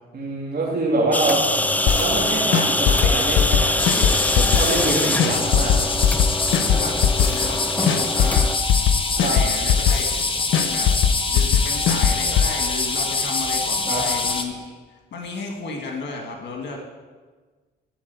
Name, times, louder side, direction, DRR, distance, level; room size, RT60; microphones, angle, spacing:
voice 1, 0.1-1.4 1.8-5.8 9.1-9.4 13.9-14.0, right 2 dB, 50° right, -4 dB, 2.6 m, -25 dB
sound 1, 1.1-8.6, left 1 dB, 10° left, 0.4 m, -24 dB
sound 2, 1.9-2.2 2.5-4.9 5.2-7.6 7.9-10.2 10.5-12.5, left 8 dB, 80° left, 0.7 m, -20 dB
sound 3, 3.8-14.4, left 3 dB, 25° left, 1.1 m, -25 dB
voice 2, 6.6-8.5 9.2-10.4 10.7-11.0 11.3-16.8, left 3 dB, 65° left, 1 dB, 1.7 m, -33 dB
12.5 x 4.7 x 6.9 m, 1.4 s
cardioid pair, 90°, 20 cm